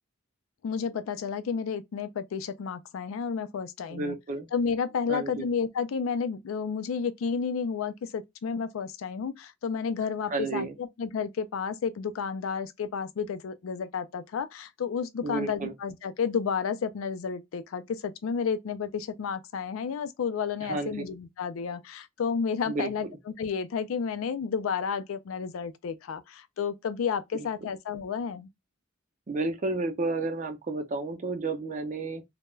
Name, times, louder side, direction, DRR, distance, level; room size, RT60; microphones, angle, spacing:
voice 1, 0.6-4.2 4.5-28.5, left 6 dB, 85° left, 0.4 m, -31 dB
voice 2, 3.9-4.5 5.1-5.5 10.3-10.7 15.2-15.7 20.6-20.9 22.7-22.9 27.3-27.5 29.3-32.2, right 3 dB, 40° right, 0.5 m, -31 dB
2.2 x 2.1 x 3.0 m
head